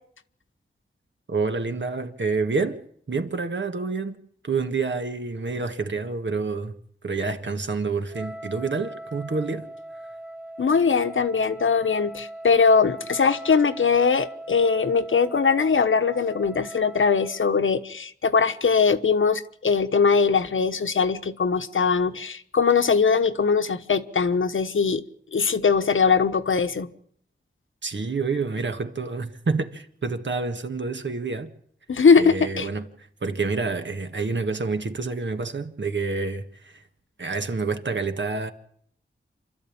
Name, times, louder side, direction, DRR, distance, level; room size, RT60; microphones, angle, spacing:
voice 1, 1.3-2.8 3.1-4.2 4.4-6.7 7.0-9.7 27.8-31.5 32.2-36.8 37.2-38.5, right 4 dB, 65° right, 1.7 m, -28 dB
Wind instrument woodwind instrument, 8.1-17.5, right 1 dB, 5° right, 1.6 m, -40 dB
voice 2, 10.6-25.0 25.3-26.9 31.9-32.7, left 5 dB, 75° left, 1.2 m, -21 dB
27.5 x 12.5 x 8.7 m
wide cardioid pair, 60°, 21 cm